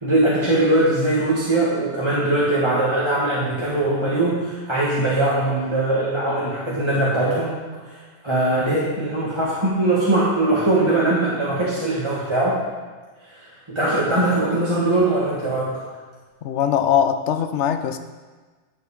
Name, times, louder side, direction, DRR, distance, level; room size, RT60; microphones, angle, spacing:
voice 1, 0.0-12.6 13.8-15.7, right 2 dB, 25° right, -8 dB, 1.6 m, -21 dB
voice 2, 16.4-18.0, left 9 dB, 80° left, 9 dB, 0.9 m, -21 dB
12.0 x 6.9 x 3.7 m, 1.4 s
omnidirectional pair, 1.2 m